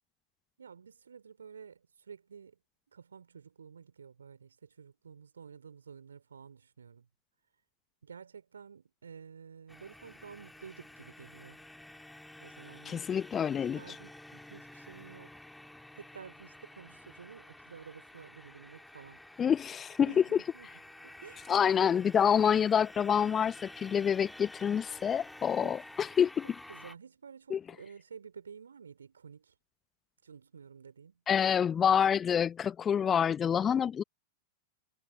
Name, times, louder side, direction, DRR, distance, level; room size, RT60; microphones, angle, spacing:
voice 1, 0.6-2.6 2.9-7.1 8.0-11.6 12.4-13.1 13.8-15.3 16.0-19.2 20.0-20.7 21.0-21.5 25.6-25.8 26.7-29.5 30.2-31.1, right 6 dB, 70° right, 3.7 m, -51 dB
sound 1, 9.7-27.0, left 1 dB, 5° left, 2.5 m, -51 dB
voice 2, 12.8-14.0 19.4-20.4 21.5-26.5 27.5-27.6 31.3-34.0, left 8 dB, 20° left, 1.0 m, -27 dB
figure-of-eight pair, 95°, 0 cm